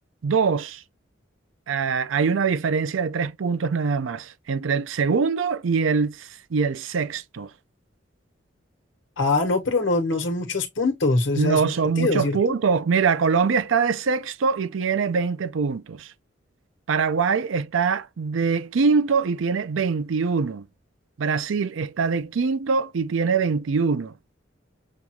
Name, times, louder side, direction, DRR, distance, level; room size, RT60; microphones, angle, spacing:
voice 1, 0.2-0.8 1.7-7.5 11.4-16.1 16.9-20.7 21.2-24.1, right 5 dB, 85° right, 0.5 m, -23 dB
voice 2, 9.2-11.7 12.0-12.4, left 3 dB, 75° left, 1.1 m, -23 dB
6.6 x 2.3 x 2.9 m
head